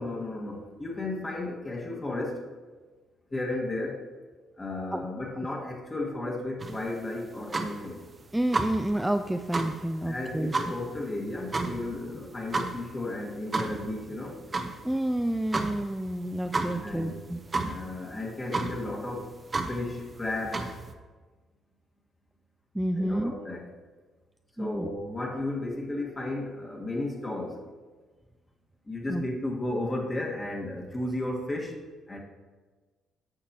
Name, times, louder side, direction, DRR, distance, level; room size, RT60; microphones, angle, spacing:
voice 1, 0.0-2.4 3.3-4.1 4.6-8.0 10.0-14.4 16.7-17.2 17.6-19.3 19.7-20.7 23.0-23.7 24.6-27.6 28.9-31.8 32.1-32.2, left 2 dB, 25° left, -1 dB, 1.7 m, -34 dB
sound 1, 6.6-20.9, right 3 dB, 30° right, 0.8 m, -34 dB
voice 2, 8.3-10.5 14.8-17.4 22.7-23.3 24.6-24.9 29.1-29.2, right 1 dB, 5° right, 6 dB, 0.4 m, -29 dB
10.0 x 6.6 x 3.0 m, 1.3 s
cardioid pair, 80°, 0 cm